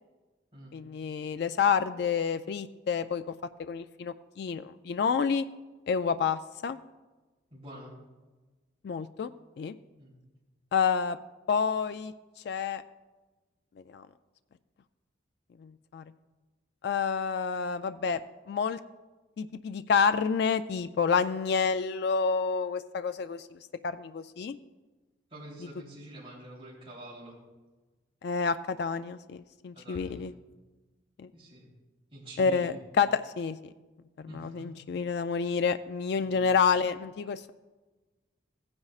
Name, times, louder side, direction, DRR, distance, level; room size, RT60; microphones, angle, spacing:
voice 1, 0.7-3.2 3.6-5.5 5.9-6.8 8.8-9.3 9.6-9.8 10.7-11.2 11.5-12.1 12.4-12.8 13.9-14.0 15.6-16.0 16.8-18.2 18.5-18.8 19.4-24.6 28.2-30.3 31.2-31.3 32.4-33.7 34.2-37.5, left 6 dB, 60° left, 11 dB, 0.3 m, -29 dB
voice 2, 7.5-7.9 10.0-10.1 25.3-27.4 29.7-30.3 31.3-31.7 32.1-32.7 34.3-34.7 36.2-36.5, right 1 dB, 30° right, -7 dB, 3.2 m, -46 dB
16.5 x 9.6 x 2.4 m, 1.2 s
head